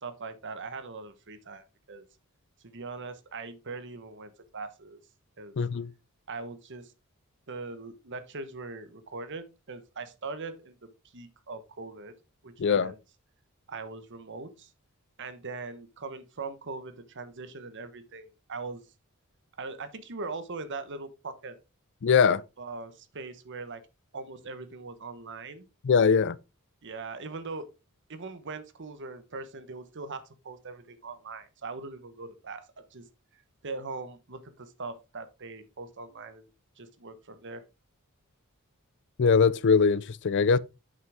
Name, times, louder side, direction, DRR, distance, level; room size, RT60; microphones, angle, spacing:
voice 1, 0.0-2.1 2.6-5.0 5.4-5.6 6.3-6.9 7.5-12.2 12.4-13.0 13.7-14.7 15.2-18.9 19.6-21.6 22.3-23.8 24.1-25.6 26.8-27.7 28.1-33.1 33.6-36.5 36.8-37.6, right 3 dB, 60° right, 1.1 m, -41 dB
voice 2, 5.6-5.9 12.6-12.9 22.0-22.4 25.8-26.4 39.2-40.6, left 5 dB, 55° left, 0.5 m, -22 dB
8.1 x 6.2 x 3.5 m
head